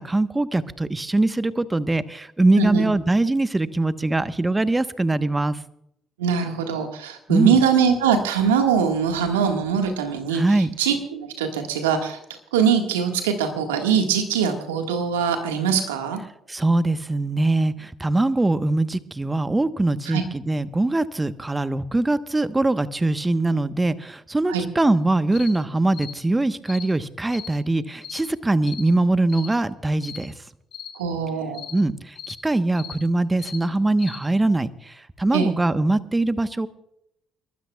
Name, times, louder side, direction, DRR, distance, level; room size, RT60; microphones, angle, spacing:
voice 1, 0.0-5.6 7.3-7.6 10.3-10.7 16.5-30.3 31.7-36.7, right 2 dB, 20° right, 12 dB, 1.1 m, -22 dB
voice 2, 2.6-2.9 6.2-16.2 20.1-20.2 24.5-24.7 30.9-31.6 35.3-35.5, right 7 dB, 90° right, 5 dB, 1.7 m, -22 dB
sound 1, 25.3-25.5 25.9-26.1 26.6-26.9 27.3-27.5 28.0-28.2 28.6-28.9 29.3-29.5 30.0-30.2 30.7-30.9 31.5-31.8 32.1-32.4 32.7-33.0 33.4-33.6 34.0-34.2, left 9 dB, 65° left, 5.0 m, -38 dB
29.5 x 13.0 x 2.4 m, 0.78 s
hypercardioid pair, 50°, 0 cm